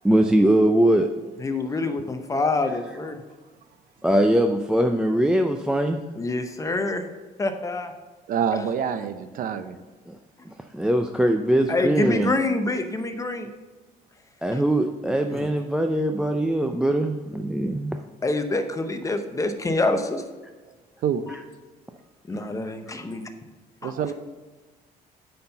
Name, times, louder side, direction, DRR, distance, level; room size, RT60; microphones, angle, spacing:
voice 1, 0.0-1.1 4.0-6.0 10.1-10.2 10.5-12.3 14.4-18.0 21.3-21.4 22.9-23.0, right 1 dB, 5° right, 5 dB, 0.4 m, -21 dB
voice 2, 1.4-3.2 6.2-7.0 7.4-7.9 11.7-13.5 15.3-15.5 18.2-20.2 21.3-21.4 22.3-23.2 23.8-24.1, left 2 dB, 20° left, 7 dB, 0.7 m, -26 dB
voice 3, 8.3-9.8 16.3-16.4 21.0-21.2 23.8-24.1, right 8 dB, 60° right, 11 dB, 0.6 m, -26 dB
9.2 x 4.4 x 5.4 m, 1.3 s
cardioid pair, 120°, 16 cm